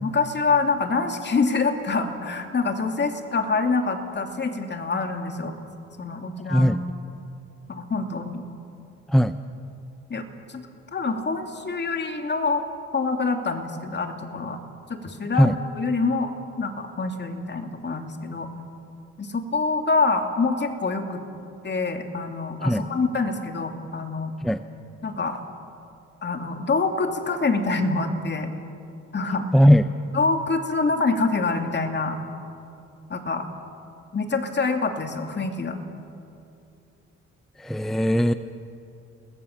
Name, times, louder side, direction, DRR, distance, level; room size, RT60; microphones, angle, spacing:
voice 1, 0.0-5.5 6.0-6.8 7.7-8.4 10.1-12.7 12.9-14.6 14.9-18.5 19.2-21.2 21.6-24.3 25.0-25.4 26.2-28.5 29.1-29.5 30.1-32.2 33.1-33.5 34.1-35.8, left 3 dB, 35° left, 5 dB, 2.7 m, -26 dB
voice 2, 6.5-6.8 9.1-9.4 15.4-15.6 22.6-22.8 24.4-24.6 29.5-29.9 37.6-38.3, equal, ahead, 10 dB, 0.7 m, -18 dB
29.5 x 20.0 x 7.3 m, 2.7 s
cardioid pair, 90°, 30 cm